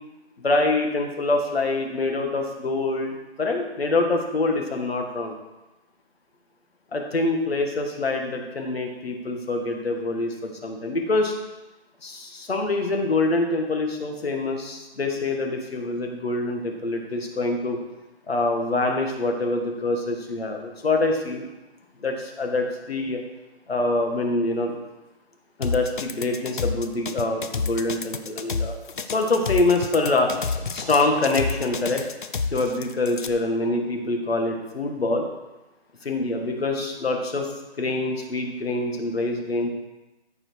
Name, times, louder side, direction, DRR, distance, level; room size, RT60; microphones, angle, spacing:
voice 1, 0.4-5.3 6.9-11.3 12.0-17.8 18.3-21.5 22.0-23.2 23.7-24.7 25.6-28.7 29.1-30.3 30.7-32.1 32.5-35.2 36.0-37.5 37.8-39.7, left 2 dB, 65° left, 2 dB, 2.0 m, -25 dB
sound 1, 25.6-33.3, left 4 dB, 50° left, 0.7 m, -29 dB
14.0 x 4.8 x 4.7 m, 1.0 s
hypercardioid pair, 165°, 32 cm